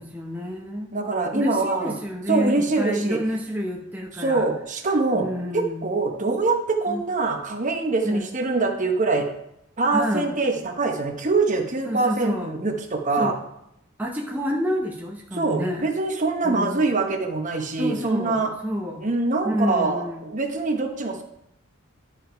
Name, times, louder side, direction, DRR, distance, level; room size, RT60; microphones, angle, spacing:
voice 1, 0.0-0.9 1.3-4.5 5.1-5.9 6.9-7.0 8.0-8.3 9.9-10.4 11.9-12.5 13.2-13.4 14.0-15.9 16.4-16.9 17.8-19.1 19.4-20.2, equal, 10° right, -1 dB, 0.8 m, -28 dB
voice 2, 0.9-1.9 2.3-3.2 4.2-5.3 5.5-9.3 9.8-13.3 15.3-18.5 19.0-21.2, right 3 dB, 35° right, 4 dB, 1.0 m, -24 dB
11.5 x 4.9 x 4.6 m, 0.79 s
head